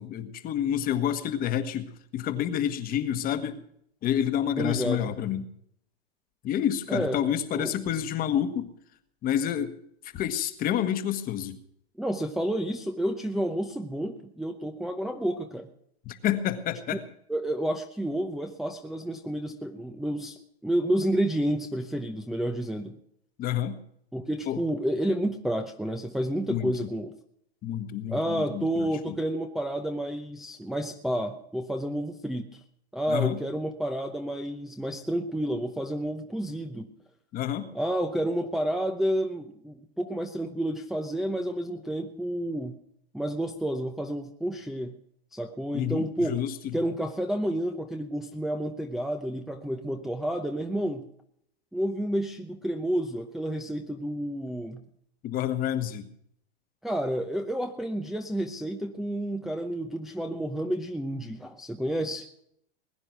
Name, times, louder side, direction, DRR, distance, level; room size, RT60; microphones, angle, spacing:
voice 1, 0.0-3.6 4.0-5.4 6.4-8.7 9.2-9.7 10.1-11.6 16.0-17.0 23.4-23.8 24.5-24.6 26.5-26.7 27.6-29.1 33.1-33.4 37.3-37.7 45.7-46.7 55.2-56.0, left 10 dB, 25° left, 10 dB, 1.4 m, -29 dB
voice 2, 4.6-5.1 6.9-7.8 12.0-15.7 17.3-23.0 24.1-27.1 28.1-32.6 32.9-36.9 37.7-42.7 43.1-44.9 45.3-46.4 46.7-51.0 51.7-54.8 56.8-62.3, right 1 dB, ahead, 2 dB, 0.8 m, -30 dB
20.5 x 9.7 x 6.1 m, 0.70 s
hypercardioid pair, 140°, 32 cm